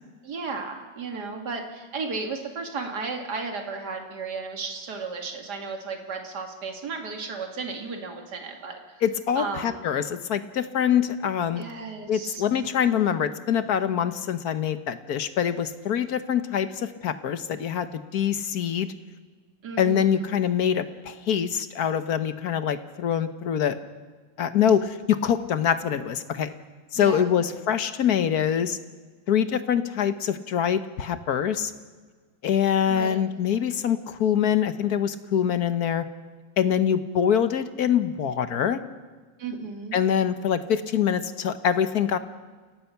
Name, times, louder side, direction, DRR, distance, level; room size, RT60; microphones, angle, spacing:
voice 1, 0.2-8.8 9.4-9.8 11.5-13.0 19.6-20.3 26.9-27.4 32.9-33.2 39.4-40.0, right 4 dB, 60° right, 3 dB, 2.8 m, -34 dB
voice 2, 9.0-11.6 12.1-17.9 18.1-18.9 19.8-23.8 24.4-26.5 26.9-28.8 29.3-31.7 32.4-36.0 36.6-38.8 39.9-42.2, left 8 dB, 60° left, 11 dB, 1.4 m, -24 dB
29.0 x 17.5 x 5.8 m, 1.4 s
omnidirectional pair, 2.1 m